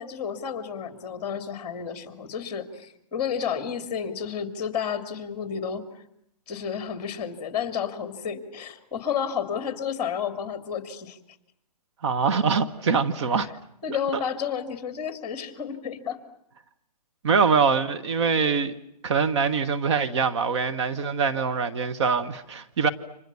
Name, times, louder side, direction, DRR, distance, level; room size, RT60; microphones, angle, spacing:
voice 1, 0.0-5.9 6.5-11.2 13.8-16.2, left 7 dB, 20° left, 2.8 m, -31 dB
voice 2, 12.0-13.5 13.9-14.0 17.2-18.7 19.0-22.9, right 5 dB, 45° right, 1.5 m, -23 dB
30.0 x 26.5 x 7.1 m
hypercardioid pair, 155°, 21 cm